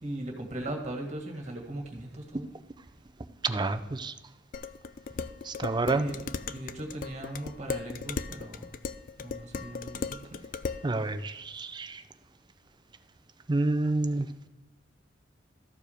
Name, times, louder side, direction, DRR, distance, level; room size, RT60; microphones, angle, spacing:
voice 1, 0.0-2.5 5.9-6.2 6.4-8.7 9.2-10.2, right 1 dB, 40° right, 1 dB, 1.8 m, -38 dB
voice 2, 3.4-4.1 5.4-6.1 10.8-12.0 13.5-14.3, right 2 dB, 25° right, 10 dB, 0.5 m, -29 dB
Dishes pots and pans, 4.5-10.9, left 5 dB, 45° left, 0.4 m, -37 dB
13.5 x 4.8 x 5.0 m, 1.0 s
head